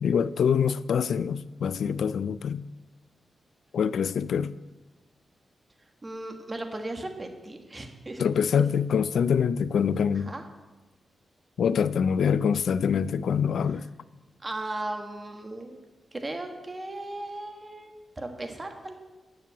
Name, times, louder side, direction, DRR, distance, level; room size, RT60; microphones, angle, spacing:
voice 1, 0.0-2.7 3.7-4.5 8.2-10.3 11.6-13.9, left 7 dB, 80° left, 0.4 m, -25 dB
voice 2, 6.0-8.2 10.1-10.4 14.4-15.8 16.1-18.9, right 2 dB, 25° right, 1.5 m, -36 dB
9.9 x 7.1 x 8.3 m
wide cardioid pair, 105°, 0 cm